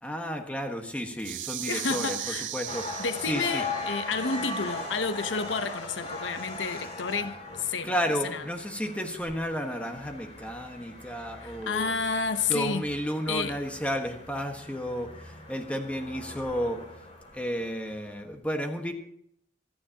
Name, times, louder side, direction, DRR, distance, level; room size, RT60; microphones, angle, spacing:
voice 1, 0.0-3.6 7.8-11.9 12.5-16.8 17.3-18.9, equal, 5° left, 1.4 m, -32 dB
sound 1, 1.2-3.8, right 15 dB, 75° right, 0.5 m, -37 dB
voice 2, 1.7-2.5 3.0-7.9 8.2-8.4 11.4-12.8 13.3-13.6, left 5 dB, 85° left, 0.9 m, -30 dB
sound 2, 2.7-18.0, left 2 dB, 35° left, 2.5 m, -40 dB
25.0 x 9.7 x 2.9 m
head